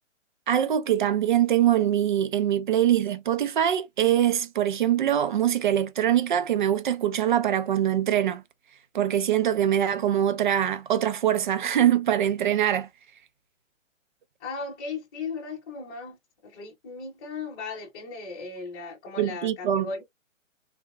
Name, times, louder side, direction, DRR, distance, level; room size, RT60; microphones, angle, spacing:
voice 1, 0.5-8.4 8.9-12.9 19.2-19.9, right 10 dB, 40° right, 0.4 m, -23 dB
voice 2, 14.4-16.2 16.4-20.0, left 4 dB, 20° left, 0.9 m, -36 dB
3.4 x 2.8 x 2.3 m
hypercardioid pair, 150°, 38 cm